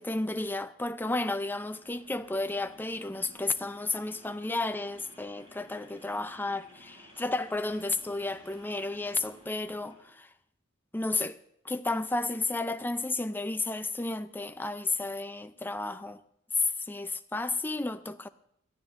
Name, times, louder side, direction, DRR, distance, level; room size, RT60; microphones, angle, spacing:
voice 1, 0.0-10.3 10.9-11.4 11.6-16.2 16.5-18.3, left 2 dB, 10° left, 0.5 m, -32 dB
sound 1, 1.2-10.1, equal, 25° right, 4.6 m, -56 dB
22.5 x 14.5 x 2.6 m
head